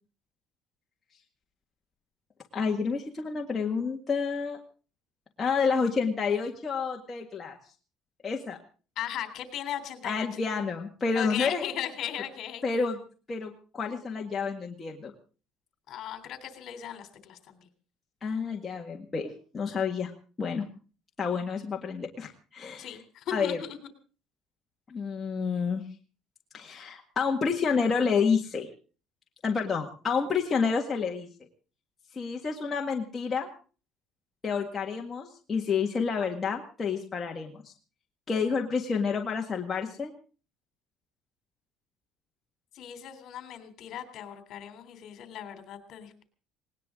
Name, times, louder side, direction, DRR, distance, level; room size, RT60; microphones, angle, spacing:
voice 1, 2.5-4.6 5.4-7.6 8.2-8.6 10.0-11.6 12.6-13.0 13.3-15.1 18.2-20.1 20.4-20.6 21.2-23.0 23.3-23.6 24.9-25.8 26.5-28.7 29.4-31.3 32.1-33.5 34.4-37.6 38.3-40.1, left 5 dB, 25° left, 0 dB, 1.8 m, -29 dB
voice 2, 9.0-10.4 11.1-12.6 15.9-17.7 22.8-23.8 42.7-46.2, left 10 dB, 55° left, 8 dB, 3.4 m, -37 dB
19.5 x 19.0 x 3.8 m, 0.38 s
cardioid pair, 130°, 0 cm